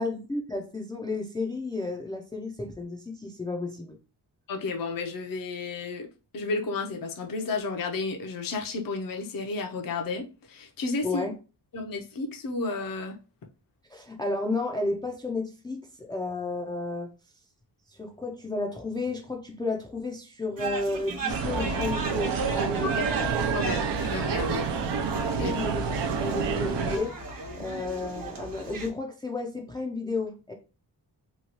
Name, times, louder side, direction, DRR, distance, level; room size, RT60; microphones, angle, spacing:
voice 1, 0.0-4.0 11.0-11.3 13.9-17.1 17.9-22.9 24.8-24.9 25.2-27.1 27.6-30.5, left 3 dB, 10° left, 1 dB, 0.3 m, -32 dB
voice 2, 4.5-6.1 6.3-11.2 11.7-13.2 22.8-23.1 23.5-24.7 25.4-25.5 27.7-27.8, left 3 dB, 55° left, 3 dB, 0.6 m, -32 dB
sound 1, 20.6-28.9, right 3 dB, 50° right, 0.8 m, -37 dB
sound 2, 21.3-27.0, right 5 dB, 75° right, 0.6 m, -28 dB
3.0 x 2.3 x 2.8 m, 0.33 s
wide cardioid pair, 110°, 42 cm